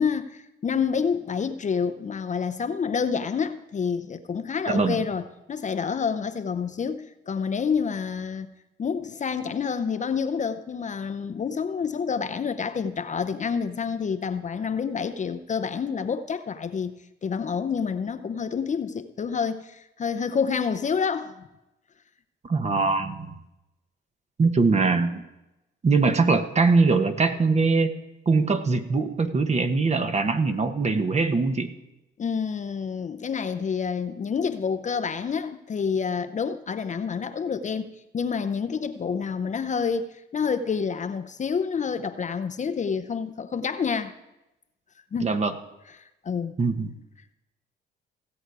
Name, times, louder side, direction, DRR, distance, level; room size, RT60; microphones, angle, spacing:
voice 1, 0.0-8.5 8.8-21.5 32.2-37.9 38.1-44.1 45.1-45.3 46.2-46.5, left 6 dB, 40° left, 10 dB, 0.7 m, -28 dB
voice 2, 4.7-5.0 22.5-23.3 24.4-25.2 25.8-27.9 28.3-31.7 45.2-45.5 46.6-46.9, right 4 dB, 35° right, 8 dB, 1.1 m, -22 dB
16.5 x 8.0 x 4.8 m, 0.95 s
cardioid pair, 90°, 20 cm